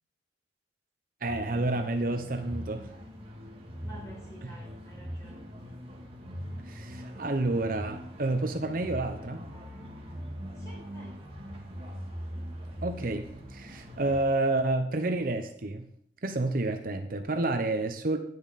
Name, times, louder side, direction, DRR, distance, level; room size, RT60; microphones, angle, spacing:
voice 1, 1.2-2.9 4.4-4.5 6.7-9.5 12.8-15.9 16.2-18.2, right 2 dB, 50° right, 6 dB, 0.8 m, -29 dB
sound 1, 1.3-14.3, equal, 30° right, 1.7 m, -41 dB
voice 2, 3.8-5.5 10.6-11.2, right 1 dB, 20° left, -3 dB, 4.4 m, -50 dB
10.5 x 9.5 x 4.1 m, 0.67 s
head